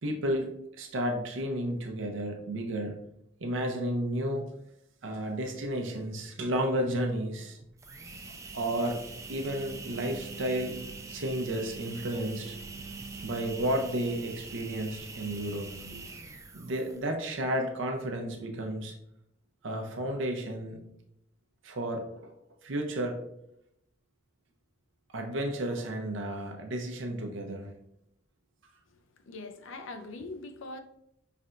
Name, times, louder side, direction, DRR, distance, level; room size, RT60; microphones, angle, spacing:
voice 1, 0.0-3.0 3.4-4.4 5.0-7.6 8.5-9.0 9.3-10.7 11.1-12.6 13.2-16.0 16.5-18.9 19.6-20.8 21.6-22.3 22.6-23.2 25.1-27.7, right 1 dB, 75° right, 0.6 m, -32 dB
sound 1, 7.8-17.1, right 3 dB, 15° right, 0.4 m, -43 dB
voice 2, 29.3-30.8, left 2 dB, 80° left, 0.5 m, -42 dB
5.5 x 3.3 x 2.5 m
head